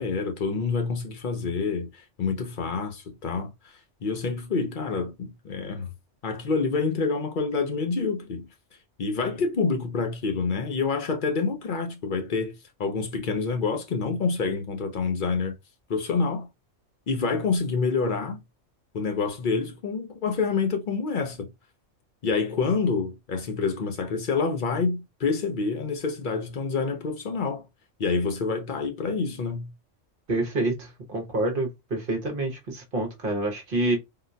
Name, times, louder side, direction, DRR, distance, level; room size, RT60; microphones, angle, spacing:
voice 1, 0.0-5.9 6.2-8.5 9.0-12.5 12.8-15.5 15.9-16.5 17.1-18.4 18.9-21.5 22.2-27.7 28.0-29.7, left 4 dB, 50° left, 0.7 m, -27 dB
voice 2, 30.3-34.0, right 2 dB, 50° right, 1.0 m, -27 dB
3.8 x 2.2 x 2.5 m
omnidirectional pair, 1.3 m